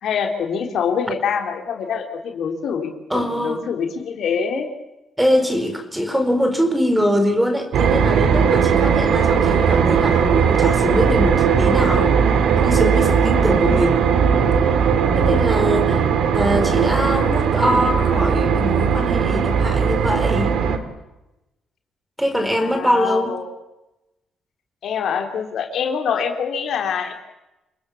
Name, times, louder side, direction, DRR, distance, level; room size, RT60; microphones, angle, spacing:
voice 1, 0.0-4.7 22.4-23.5 24.8-27.1, left 6 dB, 70° left, 4 dB, 3.7 m, -25 dB
voice 2, 3.1-3.7 5.2-12.1 12.6-14.0 15.2-16.1 16.3-20.5 22.2-23.3, equal, 5° right, 7 dB, 4.6 m, -22 dB
sound 1, 7.7-20.8, right 7 dB, 75° right, 2.6 m, -18 dB
29.0 x 20.0 x 7.3 m, 0.96 s
cardioid pair, 90°, 0 cm